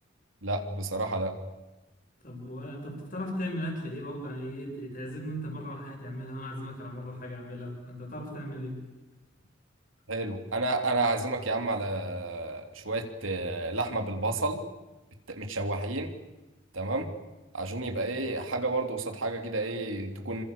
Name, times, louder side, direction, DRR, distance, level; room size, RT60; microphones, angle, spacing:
voice 1, 0.4-1.4 10.1-14.6 15.3-16.1 16.7-17.1 17.5-20.4, right 2 dB, 85° right, 5 dB, 3.3 m, -31 dB
voice 2, 2.2-8.8, equal, 40° left, 1 dB, 7.8 m, -37 dB
29.0 x 25.5 x 6.9 m, 1.1 s
head